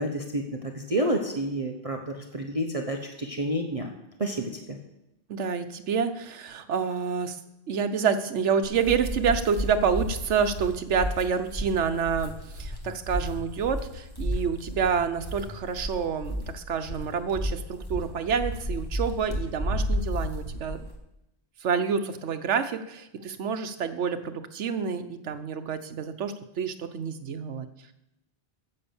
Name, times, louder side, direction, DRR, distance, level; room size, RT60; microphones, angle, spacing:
voice 1, 0.0-3.9 4.2-4.8, right 1 dB, 30° right, 2 dB, 0.9 m, -29 dB
voice 2, 5.3-7.4 7.7-20.8 21.6-27.7, right 6 dB, 75° right, 8 dB, 1.1 m, -28 dB
sound 1, 8.6-21.0, equal, 20° left, 1.5 m, -33 dB
9.7 x 7.7 x 7.1 m, 0.88 s
omnidirectional pair, 1.2 m